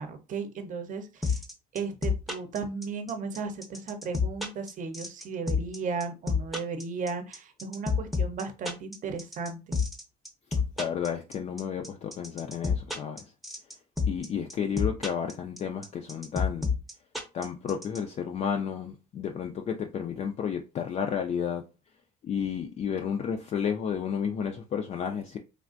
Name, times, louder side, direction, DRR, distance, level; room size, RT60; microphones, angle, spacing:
voice 1, 0.0-1.4 1.7-9.8, right 5 dB, 50° right, 0.7 m, -35 dB
sound 1, 1.2-18.0, left 5 dB, ahead, 0.6 m, -28 dB
voice 2, 10.8-13.2 14.1-16.7 17.3-21.6 22.2-25.4, left 7 dB, 40° left, 0.4 m, -32 dB
3.3 x 2.4 x 2.5 m
cardioid pair, 110°, 17 cm